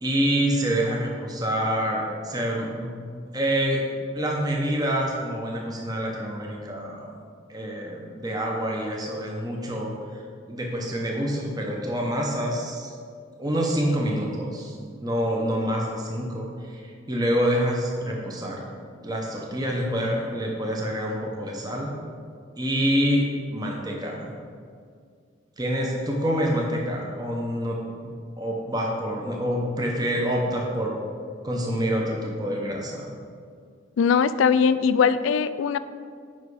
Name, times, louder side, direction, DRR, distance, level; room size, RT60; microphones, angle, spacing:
voice 1, 0.0-2.9 3.3-3.8 4.1-7.2 7.5-12.9 13.4-14.7 15.0-18.7 19.0-21.9 22.6-23.2 23.5-24.3 25.6-31.0 31.4-33.1, equal, 20° right, -1 dB, 0.8 m, -27 dB
voice 2, 34.0-35.8, left 6 dB, 75° left, 14 dB, 0.3 m, -20 dB
7.4 x 5.6 x 4.8 m, 2.2 s
head